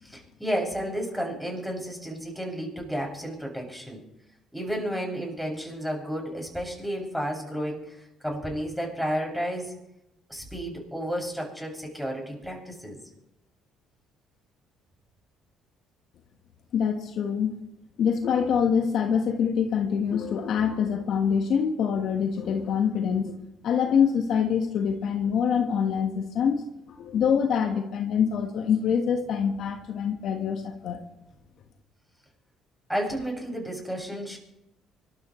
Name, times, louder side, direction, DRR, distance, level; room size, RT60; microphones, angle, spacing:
voice 1, 0.0-4.0 4.5-9.7 10.3-13.0 32.9-34.4, equal, ahead, 0 dB, 6.7 m, -32 dB
voice 2, 16.7-17.5 18.0-26.6 27.0-31.0, left 7 dB, 60° left, 5 dB, 1.3 m, -25 dB
25.0 x 13.0 x 3.1 m, 0.88 s
supercardioid pair, 65°, 0 cm